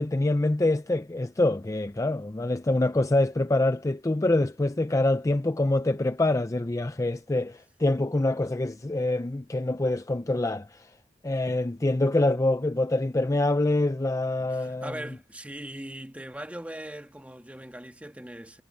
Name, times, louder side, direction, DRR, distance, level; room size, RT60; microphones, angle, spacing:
voice 1, 0.0-10.9 11.2-14.9, left 2 dB, 15° left, 0.5 m, -25 dB
voice 2, 14.5-18.6, right 1 dB, 10° right, 1.5 m, -40 dB
head